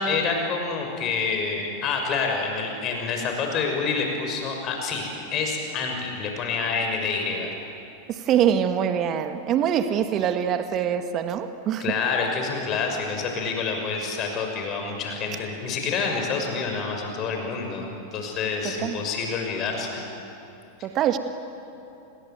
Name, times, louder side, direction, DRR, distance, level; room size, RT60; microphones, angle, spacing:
voice 1, 0.0-7.5 11.8-20.1, left 4 dB, 35° left, 2 dB, 6.2 m, -27 dB
voice 2, 8.1-11.9 18.8-19.0 20.8-21.2, right 9 dB, 35° right, 9 dB, 1.5 m, -24 dB
28.5 x 21.0 x 9.4 m, 2.9 s
figure-of-eight pair, 90°, 0 cm